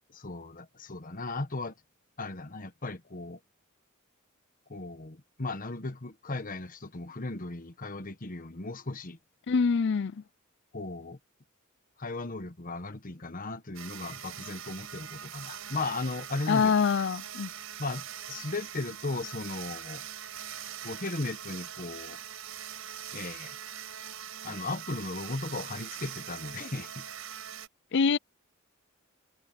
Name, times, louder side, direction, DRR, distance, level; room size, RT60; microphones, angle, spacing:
voice 1, 0.1-1.7 2.2-3.4 4.7-9.2 10.7-11.2 12.0-16.7 17.8-20.0 20.8-22.2 23.1-23.6 24.4-27.0, left 2 dB, 40° left, 1.3 m, -36 dB
voice 2, 9.5-10.2 16.5-17.5 27.9-28.2, left 5 dB, 55° left, 0.5 m, -25 dB
sound 1, 13.7-27.7, right 9 dB, 75° right, 5.5 m, -42 dB
head